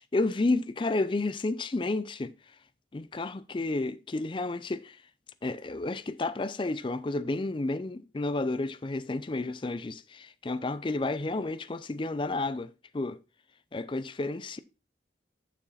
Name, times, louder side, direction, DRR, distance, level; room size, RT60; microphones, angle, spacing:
voice 1, 0.0-2.3 2.9-5.0 5.4-13.2 13.7-14.6, left 2 dB, 30° left, 0.4 m, -31 dB
7.1 x 6.8 x 4.1 m
head